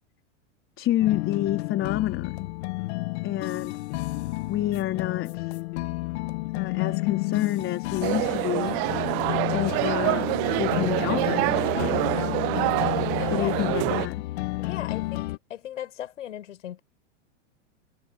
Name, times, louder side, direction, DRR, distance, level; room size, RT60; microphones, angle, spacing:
voice 1, 0.8-2.5 3.2-3.8 4.5-5.6 6.5-8.7 9.5-12.1 13.3-14.3, left 13 dB, 35° left, 4.4 m, -29 dB
sound 1, 1.0-15.4, left 20 dB, 60° left, 1.5 m, -31 dB
sound 2, 8.0-14.1, right 28 dB, 45° right, 0.7 m, -26 dB
voice 2, 14.6-16.8, left 11 dB, 85° left, 7.6 m, -37 dB
hypercardioid pair, 125°, 36 cm